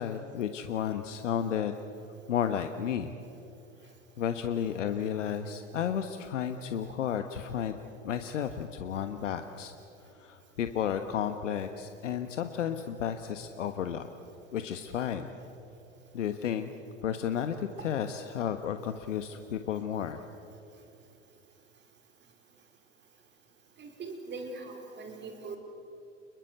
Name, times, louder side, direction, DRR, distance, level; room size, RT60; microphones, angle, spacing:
voice 1, 0.0-1.8 2.3-3.1 4.2-7.8 8.0-9.7 10.2-14.1 14.5-15.3 16.1-16.7 17.0-20.2, left 8 dB, 75° left, 8 dB, 1.4 m, -32 dB
voice 2, 23.8-25.6, right 3 dB, 30° right, 4 dB, 4.5 m, -41 dB
29.5 x 22.5 x 8.0 m, 2.9 s
hypercardioid pair, 95°, 37 cm